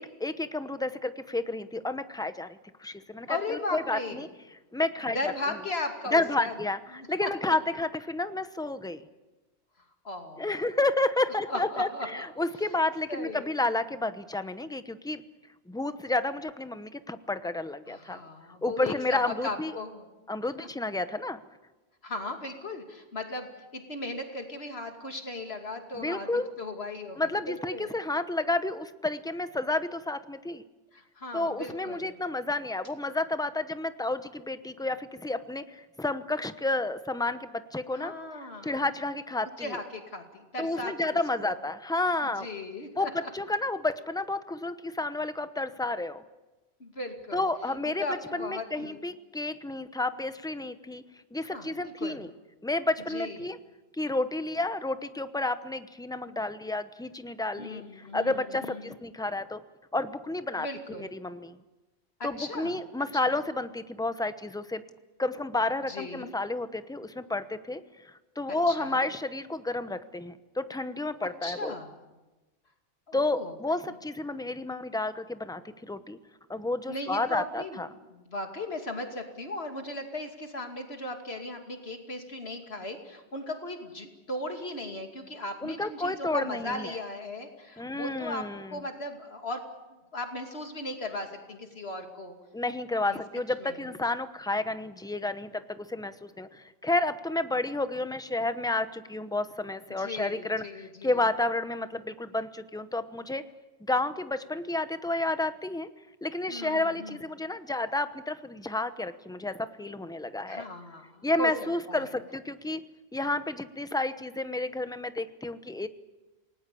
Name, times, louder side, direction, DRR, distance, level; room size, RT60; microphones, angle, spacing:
voice 1, 0.0-4.3 4.7-5.3 6.1-6.8 7.1-9.0 10.4-15.2 15.7-18.2 18.6-19.7 20.3-21.4 26.0-26.5 27.2-30.6 31.3-38.1 38.6-39.8 40.6-42.5 43.0-46.2 47.3-51.0 51.3-52.3 52.6-53.6 54.0-59.6 59.9-60.7 60.9-61.6 62.2-64.8 65.2-71.7 73.1-76.2 76.5-77.9 85.6-87.0 87.8-88.8 92.5-103.5 103.8-105.9 106.2-110.6 111.2-112.8 113.1-115.9, left 2 dB, 5° left, 11 dB, 0.8 m, -31 dB
voice 2, 3.3-4.2 5.0-6.5 6.9-7.6 10.0-10.7 11.5-12.3 12.7-12.8 13.1-13.5 17.9-20.1 20.6-20.7 22.0-27.9 30.9-32.2 37.9-38.8 39.6-41.6 42.2-43.3 46.8-47.5 47.8-49.0 51.5-52.3 53.1-53.5 57.6-58.9 60.6-61.1 62.2-62.8 65.9-66.3 68.5-69.1 71.2-72.0 73.1-73.5 73.9-74.0 76.9-77.8 78.1-89.6 90.1-92.3 93.1-93.2 93.6-93.8 100.0-101.2 106.5-107.2 110.5-111.5 111.9-112.1, left 2 dB, 75° left, 4 dB, 2.9 m, -37 dB
28.0 x 19.0 x 8.5 m, 1.1 s
omnidirectional pair, 1.1 m